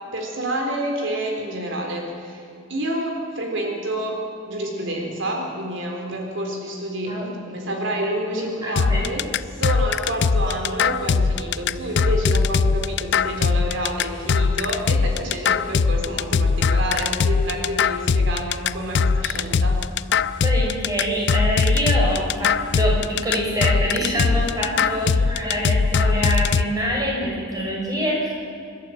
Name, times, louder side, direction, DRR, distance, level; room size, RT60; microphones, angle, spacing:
voice 1, 0.1-2.4 2.7-4.2 4.5-19.8 24.7-24.9, right 1 dB, 70° right, 1 dB, 3.8 m, -28 dB
voice 2, 8.4-9.0 20.4-28.3, equal, 20° right, -3 dB, 6.2 m, -25 dB
sound 1, 8.8-26.6, left 5 dB, 60° left, 0.5 m, -20 dB
27.0 x 12.5 x 8.6 m, 2.5 s
head